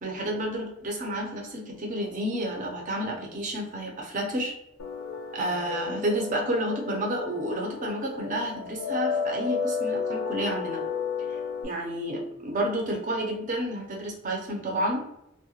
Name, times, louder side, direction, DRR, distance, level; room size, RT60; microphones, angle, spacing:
voice 1, 0.0-4.5 5.3-10.8 11.6-15.0, right 1 dB, 40° right, 0 dB, 0.5 m, -30 dB
sound 1, 4.8-11.6, left 5 dB, 70° left, 0.4 m, -32 dB
2.3 x 2.1 x 2.8 m, 0.82 s
head